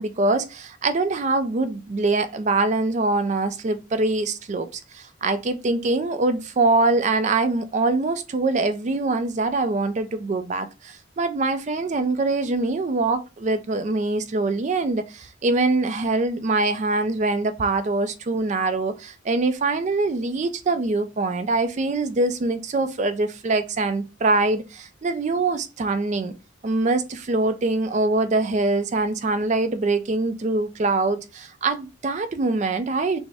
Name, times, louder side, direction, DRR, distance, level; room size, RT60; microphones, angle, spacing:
voice 1, 0.0-26.3 26.6-33.2, right 3 dB, 35° right, 0.4 m, -23 dB
6.1 x 2.1 x 3.4 m
head